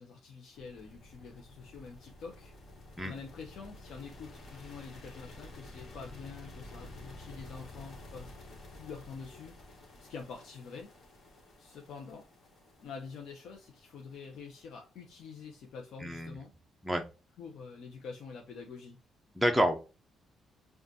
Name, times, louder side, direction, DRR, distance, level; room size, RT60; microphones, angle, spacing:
voice 1, 0.0-2.5 3.0-8.3 8.7-9.5 10.0-10.9 11.6-12.3 12.8-16.5 17.4-19.0, left 5 dB, 75° left, 1 dB, 0.6 m, -46 dB
sound 1, 0.5-15.7, left 2 dB, 50° left, 1.4 m, -51 dB
voice 2, 16.0-16.3 16.8-17.0 19.4-19.8, equal, 5° right, 3 dB, 0.5 m, -28 dB
5.1 x 2.4 x 2.7 m, 0.32 s
cardioid pair, 90°, 0 cm